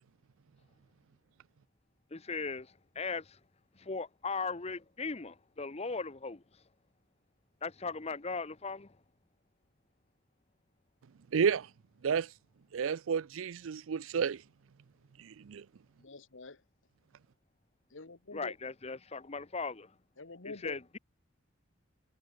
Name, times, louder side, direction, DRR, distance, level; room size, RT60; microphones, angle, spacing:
voice 1, 2.1-3.4 3.7-6.4 7.6-9.0 18.3-19.9 20.4-21.0, left 4 dB, 30° left, 0.9 m, -38 dB
voice 2, 11.3-11.7 12.0-12.3 12.7-14.4 15.2-15.6, right 6 dB, 85° right, 0.4 m, -31 dB
voice 3, 16.0-16.6 17.9-18.5 20.2-20.8, left 3 dB, 70° left, 1.5 m, -46 dB
head